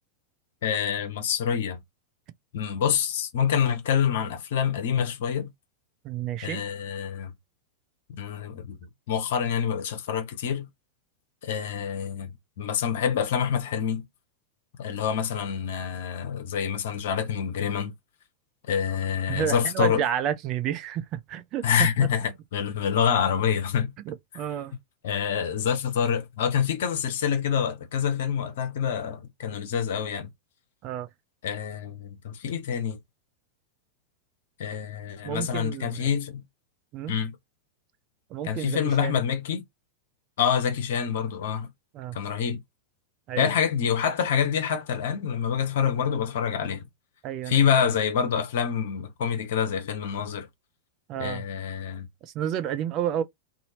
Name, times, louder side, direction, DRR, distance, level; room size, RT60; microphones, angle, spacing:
voice 1, 0.6-1.8 2.5-5.5 6.4-7.3 8.2-8.8 9.1-10.7 11.4-12.3 12.6-14.0 14.8-17.9 18.7-20.0 21.6-23.9 25.0-30.3 31.4-33.0 34.6-36.4 37.1-37.3 38.4-39.6 40.4-41.7 42.1-42.6 43.4-46.8 47.5-50.5 51.2-52.1, left 7 dB, 55° left, 0.8 m, -26 dB
voice 2, 6.0-6.6 19.3-21.9 24.0-24.7 30.8-31.1 35.2-36.1 36.9-37.2 38.3-39.2 41.9-42.2 43.3-43.5 47.2-47.6 51.1-51.4 52.2-53.2, right 10 dB, 35° right, 0.5 m, -30 dB
2.7 x 2.7 x 2.7 m
figure-of-eight pair, 90°, 0 cm